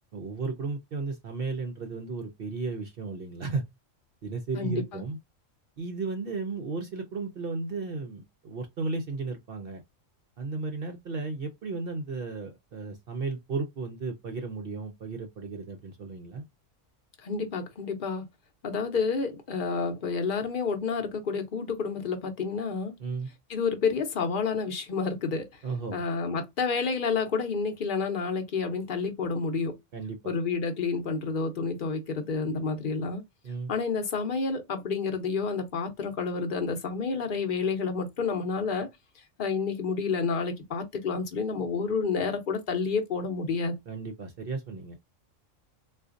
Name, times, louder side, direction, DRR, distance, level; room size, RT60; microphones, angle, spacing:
voice 1, 0.1-3.6 4.2-5.2 5.8-9.8 10.4-16.4 23.0-23.3 25.6-26.0 29.9-30.3 33.4-33.7 43.9-45.0, right 4 dB, 60° right, 0.7 m, -34 dB
voice 2, 4.5-5.0 17.2-18.3 18.6-22.9 23.5-25.5 25.9-29.7 30.2-33.2 33.7-38.9 39.4-43.8, left 5 dB, 50° left, 0.8 m, -29 dB
3.8 x 2.4 x 2.4 m
omnidirectional pair, 1.3 m